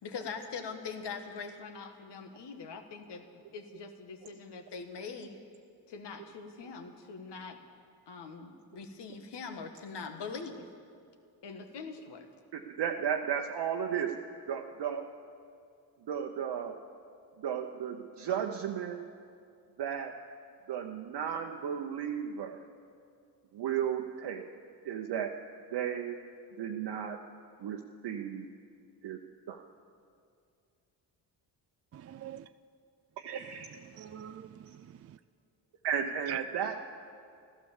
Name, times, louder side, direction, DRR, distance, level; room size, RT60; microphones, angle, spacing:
voice 1, 0.0-5.4 5.9-7.6 8.1-10.7 11.4-12.3, left 5 dB, 65° left, 1.6 m, -43 dB
voice 2, 12.5-14.2 14.5-15.1 16.1-16.8 17.4-19.0 19.8-20.2 20.7-22.6 23.5-24.5 24.8-25.4 25.7-26.2 26.6-27.2 27.6-28.5 29.0-29.2 29.5-29.6 33.2-33.7 35.8-36.8, right 8 dB, 65° right, 0.9 m, -34 dB
voice 3, 31.9-32.5 33.9-35.2 36.3-36.4, right 11 dB, 35° right, 0.4 m, -44 dB
14.0 x 12.0 x 7.3 m
cardioid pair, 70°, 44 cm